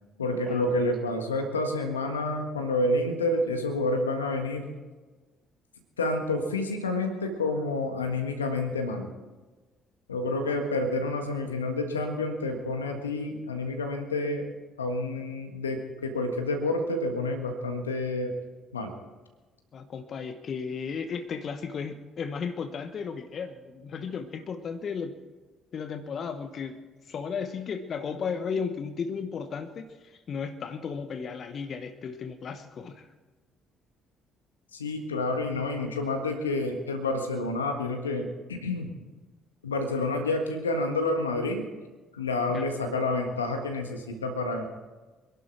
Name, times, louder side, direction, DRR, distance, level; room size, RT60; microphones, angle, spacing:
voice 1, 0.2-4.7 6.0-9.1 10.1-14.5 14.8-18.3 18.7-18.9 34.7-38.9 39.6-41.6 42.1-44.6, left 2 dB, 90° left, 5 dB, 1.6 m, -29 dB
voice 2, 19.7-25.2 25.7-33.1 42.5-42.8, left 6 dB, 50° left, 10 dB, 1.1 m, -35 dB
25.5 x 11.5 x 4.6 m, 1.2 s
hypercardioid pair, 50°, 0 cm